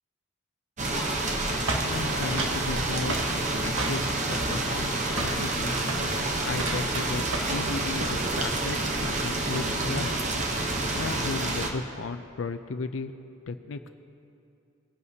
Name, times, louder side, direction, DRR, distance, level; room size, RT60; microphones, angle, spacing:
sound 1, 0.8-11.7, right 2 dB, 35° right, 0.9 m, -28 dB
sound 2, 1.7-2.6 3.1-3.3 3.8-4.2 4.5-4.9 5.2-5.4 5.8-6.1 6.5-7.6 7.9-8.2, right 2 dB, 80° right, 1.2 m, -33 dB
voice 1, 1.9-3.2 3.5-5.9 6.4-10.2 10.9-13.1 13.5-13.9, left 4 dB, 65° left, 8 dB, 0.5 m, -35 dB
20.0 x 11.0 x 2.8 m, 2.5 s
head